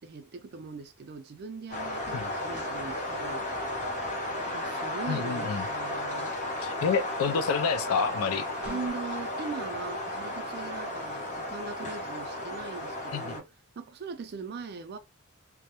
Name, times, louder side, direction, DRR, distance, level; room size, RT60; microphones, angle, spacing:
voice 1, 0.0-3.5 4.5-6.3 8.6-13.5 13.8-15.0, right 4 dB, 50° right, 0.4 m, -40 dB
sound 1, 1.7-13.4, left 1 dB, 35° left, 0.9 m, -34 dB
voice 2, 5.1-5.6 6.6-8.5 13.1-13.4, left 6 dB, 75° left, 0.3 m, -28 dB
sound 2, 8.6-9.2, equal, 5° right, 0.6 m, -43 dB
2.2 x 2.0 x 2.8 m
head